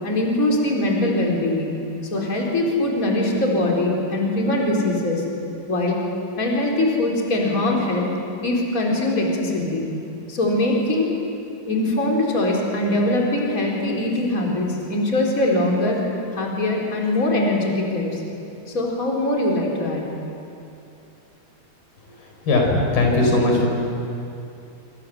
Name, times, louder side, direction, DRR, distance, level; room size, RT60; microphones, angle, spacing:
voice 1, 0.0-1.7 2.1-5.2 5.7-6.0 6.4-8.1 8.4-9.8 10.3-11.1 11.7-16.0 16.3-18.2 18.7-20.0, left 1 dB, 20° left, -1 dB, 4.3 m, -22 dB
voice 2, 22.5-23.7, left 2 dB, 70° left, 0 dB, 6.3 m, -18 dB
27.0 x 26.5 x 7.8 m, 2.6 s
omnidirectional pair, 4.5 m